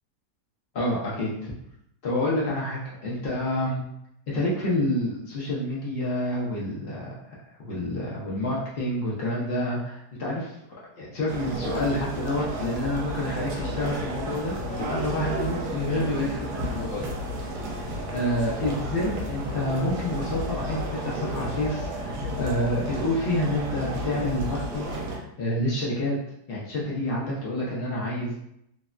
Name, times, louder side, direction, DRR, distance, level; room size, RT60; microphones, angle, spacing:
voice 1, 0.7-1.5 2.0-3.8 4.3-7.1 7.6-10.5 11.0-17.1 17.4-26.2 26.5-28.3, left 1 dB, 85° left, -6 dB, 0.4 m, -28 dB
sound 1, 11.3-25.2, equal, 75° right, 1.2 m, -32 dB
3.2 x 2.1 x 2.4 m, 0.77 s
omnidirectional pair, 1.8 m